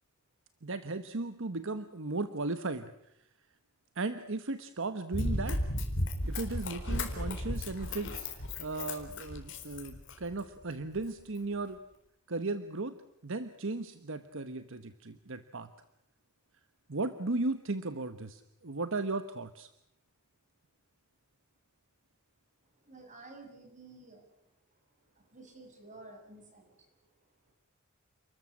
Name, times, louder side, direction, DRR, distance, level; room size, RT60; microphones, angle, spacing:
voice 1, 0.6-3.1 3.9-5.6 6.2-11.8 12.3-12.9 13.2-15.7 16.9-19.7, right 3 dB, 65° right, 11 dB, 1.2 m, -36 dB
Run, 5.1-10.4 11.0-11.1, left 1 dB, 60° left, 4.2 m, -35 dB
voice 2, 22.8-24.3 25.1-26.9, right 2 dB, 35° right, 3 dB, 7.2 m, -52 dB
30.0 x 14.0 x 9.9 m, 0.79 s
head